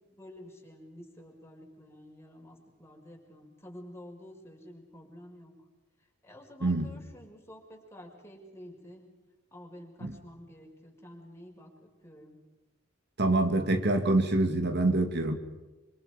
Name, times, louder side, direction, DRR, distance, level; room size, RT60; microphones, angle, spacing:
voice 1, 0.1-5.5 6.2-9.0 9.5-12.4, equal, 15° left, 0 dB, 5.7 m, -50 dB
voice 2, 13.2-15.3, right 2 dB, 60° right, 6 dB, 2.3 m, -26 dB
27.0 x 26.5 x 5.2 m, 1.1 s
head